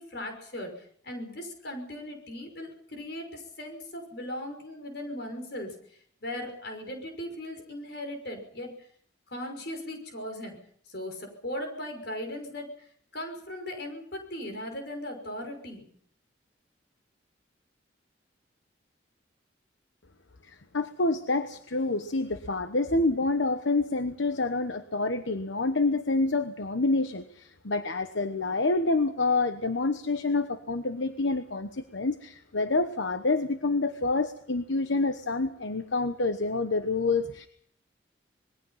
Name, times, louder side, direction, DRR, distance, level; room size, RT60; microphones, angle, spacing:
voice 1, 0.0-5.7 6.2-8.7 9.3-10.6 10.9-12.9 13.1-15.9, left 1 dB, 60° left, 4 dB, 5.9 m, -38 dB
voice 2, 20.4-37.5, left 3 dB, 80° left, 9 dB, 1.1 m, -27 dB
26.0 x 21.0 x 5.7 m, 0.62 s
head